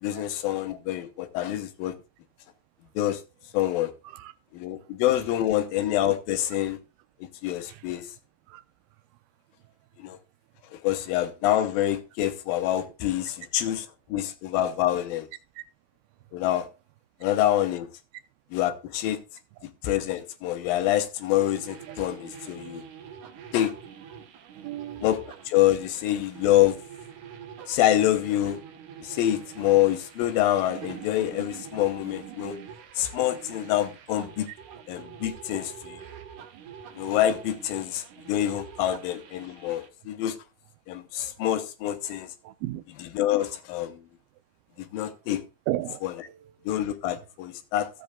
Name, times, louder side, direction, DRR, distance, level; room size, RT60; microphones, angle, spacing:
voice 1, 0.0-1.9 3.0-3.2 3.5-3.9 4.5-6.8 7.2-8.1 10.0-10.2 10.7-15.3 16.3-16.7 17.2-17.9 18.5-19.2 19.8-22.8 23.5-23.7 25.0-25.2 25.5-26.8 27.7-28.6 29.0-32.6 33.0-34.5 34.9-36.0 37.0-40.4 40.9-42.3 43.1-44.0 44.8-45.4 46.0-46.1 46.7-47.9, left 13 dB, 80° left, 2.6 m, -26 dB
Radio Interference, 21.3-39.9, right 8 dB, 70° right, 2.3 m, -45 dB
voice 2, 24.5-25.1 27.6-27.8 34.7-34.8 42.4-42.8 43.4-43.5 45.7-46.0 46.3-46.5, right 16 dB, 85° right, 2.5 m, -35 dB
15.5 x 7.7 x 2.4 m
omnidirectional pair, 4.2 m